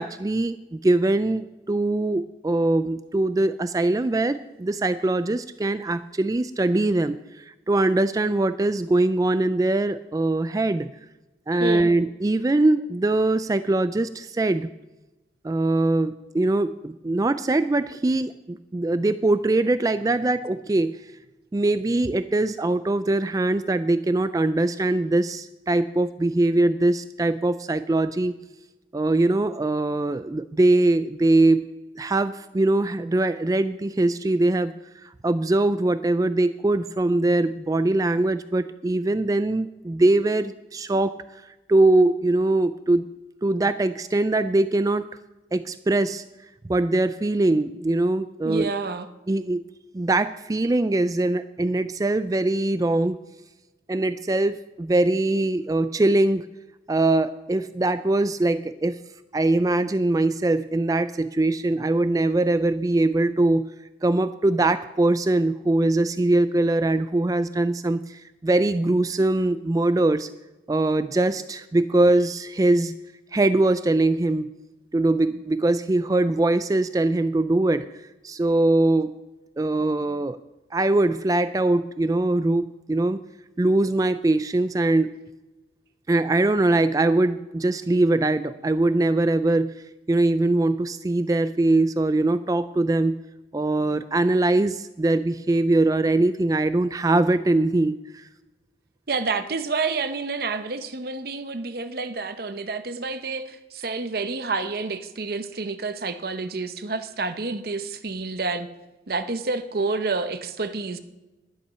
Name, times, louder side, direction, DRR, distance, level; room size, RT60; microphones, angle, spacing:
voice 1, 0.0-10.9 11.5-14.7 15.4-21.1 21.5-28.4 28.9-34.7 35.0-41.1 41.7-43.0 43.4-45.1 45.5-46.2 46.7-48.7 49.3-49.6 49.9-53.2 53.9-56.5 56.9-59.0 59.3-63.7 64.0-70.3 70.7-73.0 73.3-74.5 74.9-79.1 79.6-80.4 80.7-83.2 83.6-85.1 86.1-89.8 90.1-93.2 93.5-98.3, right 2 dB, 20° right, 12 dB, 0.3 m, -22 dB
voice 2, 11.6-11.9 48.4-49.1 99.1-108.7 109.1-111.0, right 3 dB, 55° right, 9 dB, 0.8 m, -29 dB
11.5 x 11.0 x 5.6 m, 1.1 s
head